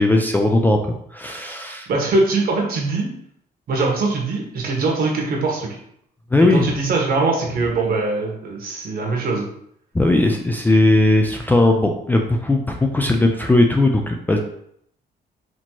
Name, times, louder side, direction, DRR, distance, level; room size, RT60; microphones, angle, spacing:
voice 1, 0.0-1.9 6.3-6.7 9.9-14.4, left 2 dB, 10° left, 2 dB, 0.3 m, -18 dB
voice 2, 1.9-3.1 3.7-5.8 6.5-9.5, right 3 dB, 60° right, -1 dB, 1.1 m, -22 dB
4.3 x 2.8 x 3.0 m, 0.69 s
cardioid pair, 145°, 17 cm